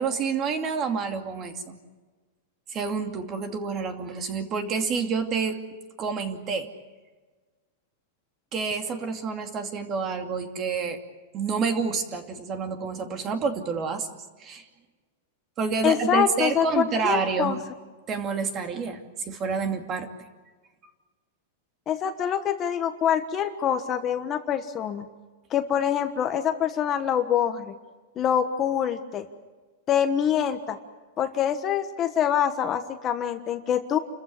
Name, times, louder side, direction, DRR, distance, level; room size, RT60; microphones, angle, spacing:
voice 1, 0.0-1.8 2.7-5.6 6.0-6.7 8.5-11.0 11.3-14.1 14.4-14.6 15.6-17.6 18.1-19.0 19.3-20.1, right 5 dB, 25° right, 6 dB, 2.6 m, -28 dB
voice 2, 15.8-17.6 21.9-25.1 25.5-27.7 28.2-29.2 29.9-30.8 31.2-34.0, left 9 dB, 25° left, 8 dB, 1.3 m, -25 dB
29.0 x 14.5 x 9.8 m, 1.3 s
supercardioid pair, 160°, 0 cm